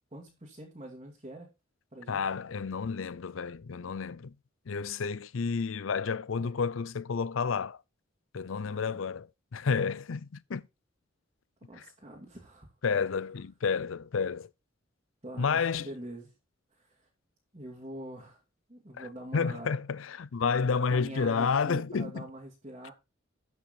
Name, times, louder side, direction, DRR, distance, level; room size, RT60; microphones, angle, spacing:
voice 1, 0.1-1.5 1.9-2.3 6.4-6.5 8.5-8.8 11.7-12.7 15.2-16.3 16.7-17.1 17.5-18.4 18.7-19.8 20.9-22.9, right 1 dB, 30° right, 2.5 m, -44 dB
voice 2, 2.1-4.3 4.7-7.8 8.3-10.6 11.8-11.9 12.8-14.5 15.4-15.9 19.0-19.1 19.3-22.2, left 5 dB, 75° left, 0.5 m, -30 dB
13.0 x 5.9 x 4.2 m
head